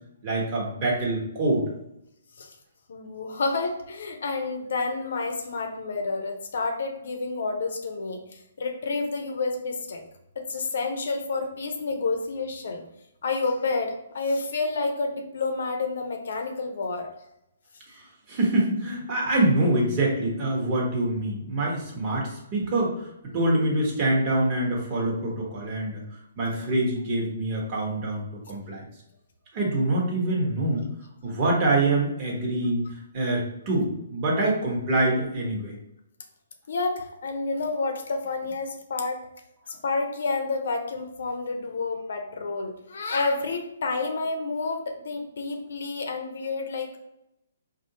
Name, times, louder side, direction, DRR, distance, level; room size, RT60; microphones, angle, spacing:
voice 1, 0.2-1.6 17.9-18.0 18.3-23.1 23.3-26.0 26.4-28.8 29.5-30.9 31.2-32.9 33.1-35.7, right 2 dB, 35° right, -3 dB, 1.3 m, -25 dB
voice 2, 2.9-8.2 8.6-10.0 10.4-12.8 13.2-17.1 36.7-39.2 39.7-47.0, left 3 dB, 70° left, 4 dB, 0.7 m, -29 dB
4.2 x 2.6 x 2.9 m, 0.81 s
hypercardioid pair, 145°, 0 cm